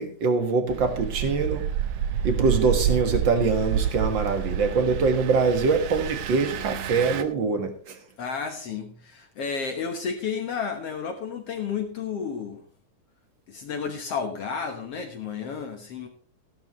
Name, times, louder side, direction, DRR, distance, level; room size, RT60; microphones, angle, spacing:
voice 1, 0.0-1.7 2.2-8.0, right 4 dB, 45° right, 7 dB, 2.0 m, -24 dB
Engine, 0.7-7.2, right 9 dB, 65° right, 1.8 m, -29 dB
voice 2, 8.2-12.6 13.5-16.1, left 6 dB, 60° left, 3 dB, 2.0 m, -32 dB
14.5 x 12.0 x 3.1 m, 0.42 s
omnidirectional pair, 3.5 m